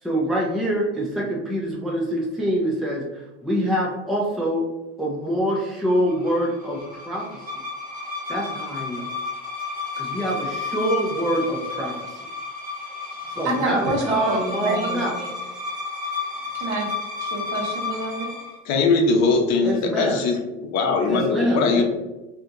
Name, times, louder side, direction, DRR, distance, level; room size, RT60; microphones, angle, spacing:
voice 1, 0.0-4.7 5.0-7.3 8.3-9.1 10.0-12.3 13.4-15.3 19.6-20.2 21.1-21.8, equal, ahead, -3 dB, 0.5 m, -25 dB
sound 1, 5.9-18.6, left 4 dB, 25° right, 1.0 m, -32 dB
voice 2, 13.4-15.0 16.5-16.9 17.2-18.3, right 2 dB, 55° right, 0 dB, 1.2 m, -28 dB
voice 3, 18.6-21.8, left 4 dB, 50° left, 3 dB, 0.7 m, -21 dB
2.8 x 2.4 x 3.7 m, 1.1 s
hypercardioid pair, 100°, 35 cm